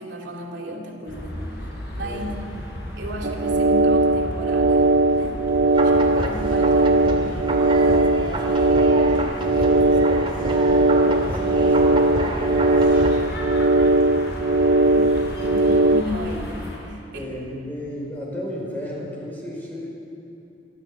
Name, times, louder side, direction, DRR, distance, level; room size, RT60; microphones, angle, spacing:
voice 1, 0.0-2.3 3.0-8.9 9.5-9.9 10.3-10.5 14.7-17.3, equal, 90° right, 1 dB, 2.9 m, -35 dB
sound 1, 1.1-16.8, equal, 65° left, 5.6 m, -34 dB
voice 2, 2.0-2.4 9.7-10.3 10.7-13.6 17.1-19.9, equal, 10° left, -3 dB, 5.1 m, -34 dB
sound 2, 3.2-16.0, right 2 dB, 55° right, 0.6 m, -19 dB
sound 3, 5.7-13.1, right 1 dB, 30° right, 2.5 m, -29 dB
25.0 x 13.0 x 7.8 m, 2.7 s
head